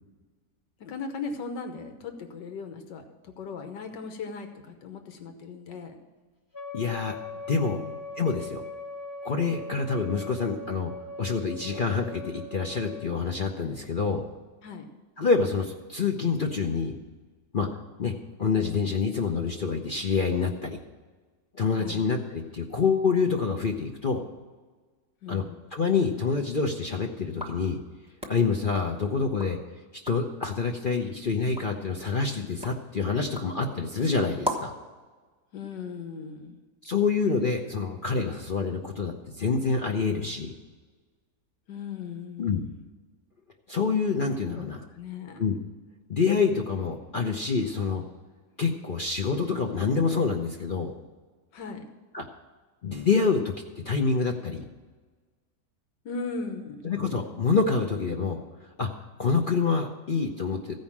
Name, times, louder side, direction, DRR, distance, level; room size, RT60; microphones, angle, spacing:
voice 1, 0.8-5.9 7.5-8.0 14.6-14.9 21.8-22.1 25.2-25.6 35.5-36.6 41.7-42.7 44.5-45.4 51.5-51.9 56.1-56.8, left 5 dB, 90° left, 6 dB, 1.7 m, -38 dB
Wind instrument woodwind instrument, 6.5-13.1, left 2 dB, 15° left, 0.8 m, -40 dB
voice 2, 6.7-7.2 7.5-7.8 8.2-8.6 9.2-10.9 11.2-14.2 15.2-17.0 17.5-17.7 18.0-18.1 18.4-20.8 21.5-24.2 25.3-25.4 25.7-27.8 28.3-29.6 30.0-34.7 36.8-40.5 42.4-42.6 43.7-44.8 45.4-45.5 46.1-48.0 48.6-50.9 52.1-52.2 52.8-53.5 53.8-54.6 56.8-60.8, left 5 dB, 50° left, 2 dB, 0.6 m, -27 dB
sound 1, 27.3-29.6 29.9-30.4 30.9-34.9, equal, 5° right, 1.1 m, -39 dB
15.0 x 5.3 x 7.3 m, 1.4 s
omnidirectional pair, 1.9 m